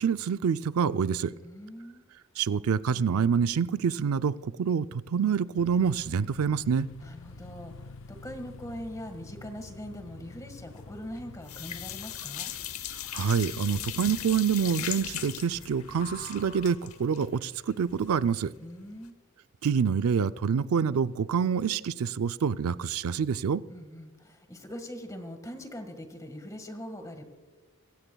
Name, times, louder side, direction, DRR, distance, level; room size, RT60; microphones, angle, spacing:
voice 1, 0.0-1.3 2.4-6.9 13.1-18.5 19.6-23.6, right 6 dB, 85° right, 0.4 m, -27 dB
voice 2, 1.4-2.0 7.0-12.5 18.6-19.2 23.7-27.3, equal, 15° left, 1.6 m, -42 dB
sound 1, 5.5-16.8, left 3 dB, 60° left, 0.4 m, -49 dB
sound 2, 10.8-11.2 11.4-18.3 18.6-18.7 19.1-19.2, left 11 dB, 80° left, 0.9 m, -38 dB
sound 3, 11.9-17.2, left 3 dB, 45° left, 1.9 m, -49 dB
26.0 x 16.0 x 2.3 m
head